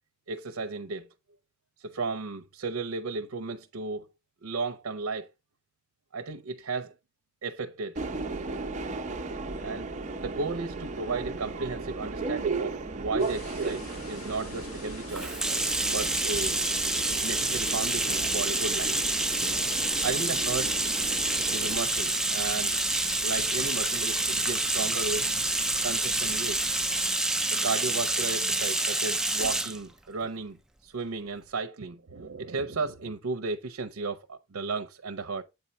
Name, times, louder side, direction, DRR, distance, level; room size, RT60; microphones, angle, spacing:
voice 1, 0.3-1.1 1.8-4.1 4.4-5.3 6.1-6.9 7.4-8.0 9.5-9.9 10.2-15.4 15.8-16.6 17.2-18.9 20.0-20.8 21.5-22.8 23.2-25.5 25.8-26.6 27.5-30.6 30.8-35.4, right 4 dB, 80° right, 0.6 m, -34 dB
Subway metro underground, 8.0-21.8, right 3 dB, 35° right, 0.7 m, -36 dB
sound 1, 13.2-27.1, left 2 dB, 80° left, 1.5 m, -45 dB
Bathtub (filling or washing), 15.1-29.8, right 2 dB, 5° right, 0.4 m, -28 dB
8.1 x 4.5 x 4.1 m
head